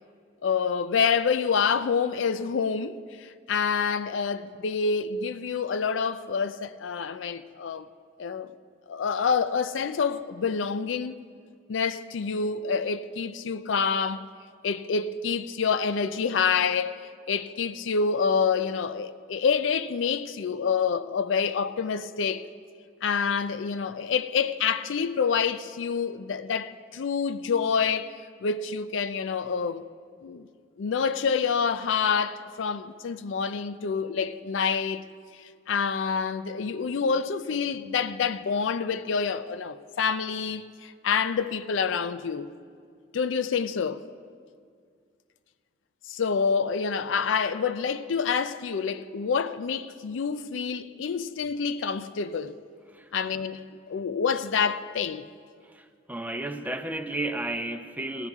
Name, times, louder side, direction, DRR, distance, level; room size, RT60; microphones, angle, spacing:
voice 1, 0.4-7.9 8.2-8.5 8.9-11.2 11.7-14.3 14.6-22.5 23.0-29.8 30.2-30.5 30.8-35.0 35.7-42.5 43.1-44.0 46.1-52.6 53.1-53.6 53.9-55.2, left 6 dB, 75° left, 0.4 m, -27 dB
voice 2, 55.6-58.3, right 2 dB, 10° right, 0.6 m, -33 dB
18.0 x 15.0 x 3.6 m
head